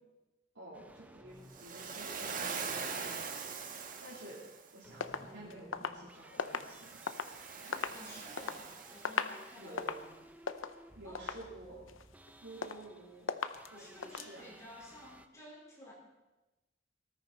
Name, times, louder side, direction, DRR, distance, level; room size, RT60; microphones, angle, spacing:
voice 1, 0.5-3.3 4.0-4.4 4.7-7.0 7.6-7.8 9.6-10.0 11.0-11.9 12.4-13.3 13.7-14.5, right 1 dB, 85° right, -9 dB, 3.7 m, -51 dB
sound 1, 0.7-15.3, right 1 dB, 10° right, 0.6 m, -58 dB
Waves surf, 1.5-4.7 6.5-9.6, right 5 dB, 45° right, 1.4 m, -42 dB
sound 2, 5.0-7.4 7.7-8.6 8.9-9.4 9.7-10.1 10.5-10.8 11.1-11.5 11.9-12.3 12.6-13.0 13.3-13.7 14.0-14.3, left 5 dB, 85° left, 0.8 m, -38 dB
voice 2, 7.9-10.2 11.0-11.3 13.7-15.9, equal, 15° left, -4 dB, 4.6 m, -53 dB
19.5 x 13.5 x 4.3 m, 1.0 s
head